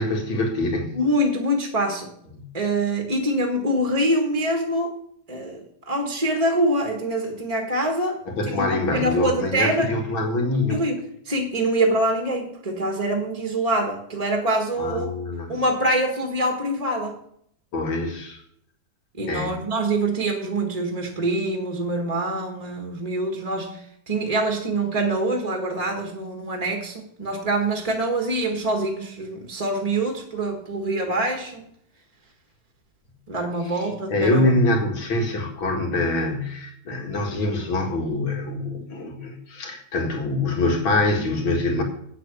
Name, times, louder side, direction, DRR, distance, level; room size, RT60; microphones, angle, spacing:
voice 1, 0.0-1.0 2.3-2.5 8.4-10.8 14.8-15.6 17.7-18.4 19.3-19.6 33.7-33.8 34.1-41.8, left 2 dB, 70° left, 2 dB, 2.8 m, -24 dB
voice 2, 0.9-2.1 2.5-5.0 5.3-8.2 8.4-9.9 10.7-15.1 15.5-17.2 19.1-31.7 33.3-34.5, right 1 dB, 20° right, 2 dB, 1.4 m, -25 dB
8.6 x 7.7 x 6.9 m, 0.68 s
omnidirectional pair, 2.3 m